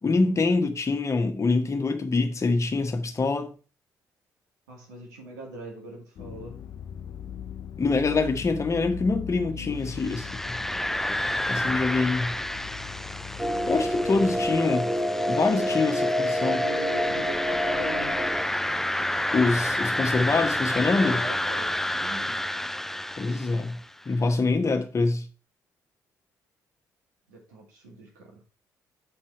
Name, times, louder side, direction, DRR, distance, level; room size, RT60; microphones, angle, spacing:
voice 1, 0.0-3.5 7.8-10.3 11.5-12.4 13.7-14.9 15.3-16.6 19.3-21.2 23.2-23.8 24.0-25.3, left 3 dB, 35° left, 1.4 m, -25 dB
voice 2, 4.7-6.6 9.5-9.8 15.5-15.8 16.3-18.2 20.9-22.4 27.3-28.4, right 2 dB, 90° right, 2.1 m, -41 dB
sound 1, 6.2-14.6, left 9 dB, 55° left, 0.5 m, -40 dB
sound 2, 9.9-23.9, left 1 dB, 5° left, 0.3 m, -30 dB
sound 3, 13.4-18.4, equal, 15° right, 0.9 m, -27 dB
9.0 x 4.4 x 4.5 m
hypercardioid pair, 50°, 9 cm